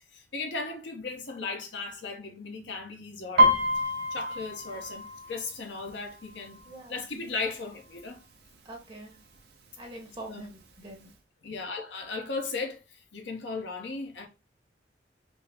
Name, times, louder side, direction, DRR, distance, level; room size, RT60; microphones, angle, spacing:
voice 1, 0.1-3.6 4.1-6.6 6.9-8.2 10.3-10.4 11.4-14.3, left 3 dB, 70° left, 0.9 m, -36 dB
Piano, 3.4-7.0 7.4-7.8 8.1-8.8 9.4-9.5 9.7-10.7 11.1-11.2, equal, 60° right, 0.7 m, -27 dB
voice 2, 6.6-7.0 8.6-9.2 9.8-11.1, right 2 dB, 25° right, 1.1 m, -44 dB
4.5 x 2.0 x 3.4 m
head